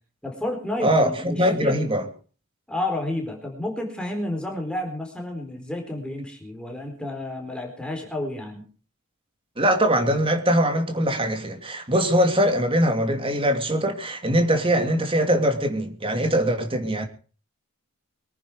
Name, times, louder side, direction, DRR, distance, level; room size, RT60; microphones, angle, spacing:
voice 1, 0.2-1.8 2.7-8.6, left 1 dB, 5° left, 4.3 m, -31 dB
voice 2, 0.8-2.0 9.6-17.1, equal, 25° right, 2.6 m, -22 dB
23.5 x 10.0 x 4.9 m
head